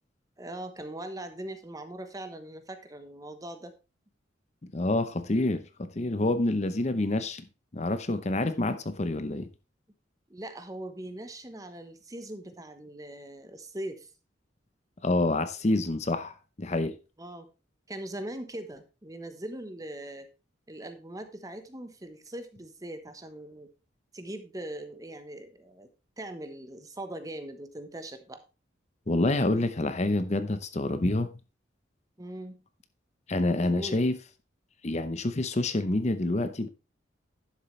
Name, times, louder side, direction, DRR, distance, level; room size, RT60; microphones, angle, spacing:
voice 1, 0.4-3.7 10.3-14.1 17.2-17.5 17.9-20.3 20.7-23.7 24.1-25.9 26.2-28.4 32.2-32.6 33.7-34.0, right 1 dB, 20° right, 1.0 m, -41 dB
voice 2, 4.7-7.5 7.7-9.5 15.0-17.0 29.1-31.3 33.3-34.1 34.8-36.7, left 2 dB, 40° left, 0.7 m, -27 dB
11.0 x 7.3 x 3.2 m
head